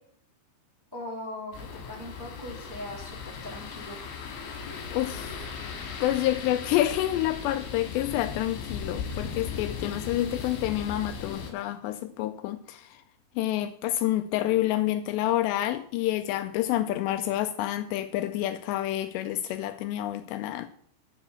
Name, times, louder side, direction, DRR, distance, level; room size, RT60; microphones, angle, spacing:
voice 1, 0.9-4.0, left 1 dB, 5° right, 2.3 m, -40 dB
sound 1, 1.5-11.5, left 6 dB, 65° left, 3.8 m, -37 dB
voice 2, 4.9-5.4 6.0-13.0 13.4-20.7, left 14 dB, 85° left, 2.6 m, -28 dB
11.0 x 7.2 x 6.8 m
omnidirectional pair, 5.2 m